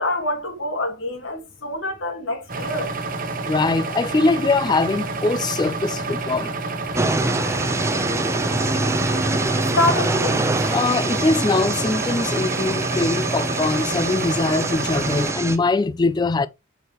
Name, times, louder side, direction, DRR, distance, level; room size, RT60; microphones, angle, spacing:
voice 1, 0.0-2.9 9.6-10.5, left 2 dB, 60° left, 2.3 m, -26 dB
sound 1, 2.5-15.3, right 3 dB, 40° right, 1.1 m, -29 dB
voice 2, 3.5-6.5 10.7-16.5, left 3 dB, 20° left, 0.3 m, -22 dB
sound 2, 7.0-15.6, right 2 dB, 15° right, 0.6 m, -24 dB
7.9 x 4.7 x 3.0 m
head